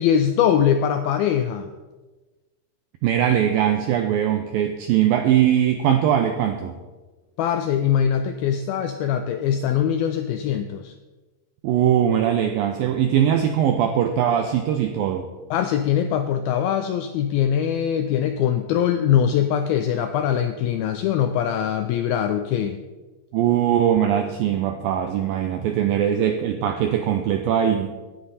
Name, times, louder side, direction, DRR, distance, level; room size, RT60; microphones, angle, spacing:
voice 1, 0.0-1.7 7.4-10.9 15.5-22.8, left 9 dB, 85° left, 7 dB, 2.1 m, -22 dB
voice 2, 3.0-6.8 11.6-15.3 23.3-27.9, right 10 dB, 90° right, 6 dB, 2.0 m, -21 dB
18.0 x 9.9 x 4.2 m, 1.2 s
omnidirectional pair, 5.0 m